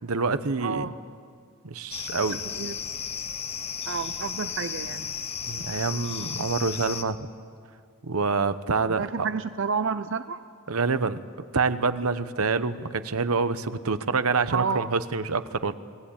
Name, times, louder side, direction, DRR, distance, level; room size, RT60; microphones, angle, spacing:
voice 1, 0.0-0.9 1.6-2.4 5.5-7.3 8.0-9.0 10.7-11.2 11.5-15.7, right 4 dB, 85° right, 12 dB, 1.0 m, -26 dB
voice 2, 0.6-0.9 2.6-2.8 3.9-5.1 9.0-10.4 14.5-14.9, right 5 dB, 60° right, 12 dB, 0.6 m, -30 dB
sound 1, 1.9-7.0, left 7 dB, 30° left, 1.1 m, -34 dB
29.0 x 19.5 x 8.8 m, 2.2 s
head